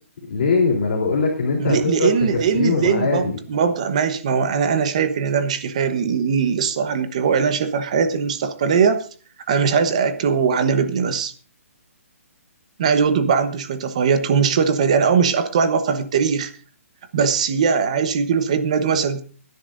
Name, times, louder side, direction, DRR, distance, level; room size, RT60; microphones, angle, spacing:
voice 1, 0.3-3.3, left 4 dB, 40° left, -1 dB, 3.6 m, -21 dB
voice 2, 1.6-9.0 9.5-11.3 12.8-16.5 17.1-19.2, right 6 dB, 25° right, 9 dB, 1.0 m, -20 dB
24.0 x 10.5 x 2.6 m, 0.39 s
hypercardioid pair, 180°, 8 cm